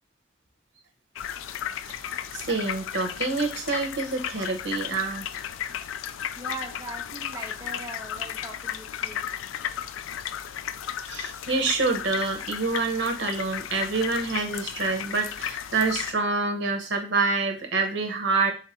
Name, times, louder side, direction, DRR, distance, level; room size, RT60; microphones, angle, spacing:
sound 1, 1.2-16.1, left 9 dB, 85° left, 0.3 m, -34 dB
voice 1, 1.8-5.3 11.1-18.5, right 4 dB, 65° right, 5 dB, 0.7 m, -27 dB
voice 2, 6.4-9.3, right 3 dB, 20° right, 1 dB, 0.4 m, -40 dB
3.8 x 2.6 x 4.2 m, 0.35 s
head